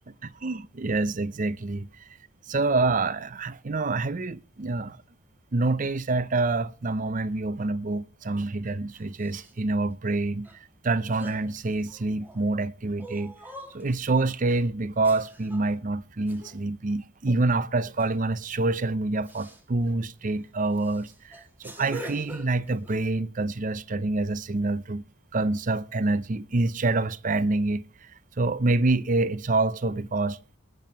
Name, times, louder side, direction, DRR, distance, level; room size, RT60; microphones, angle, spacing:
voice 1, 0.2-1.9 2.5-5.0 5.5-10.5 10.8-13.3 13.7-21.1 21.6-25.0 25.3-27.8 28.4-30.6, right 2 dB, 40° right, 0.6 m, -26 dB
sound 1, 8.9-9.5 10.5-10.6 11.0-12.5 13.0-14.1 15.0-15.7 16.3-16.7 18.0-18.2 18.6-18.8 19.3-19.6 20.2-20.4 20.8-23.0, right 1 dB, 10° right, 1.6 m, -44 dB
18.5 x 7.6 x 5.4 m
head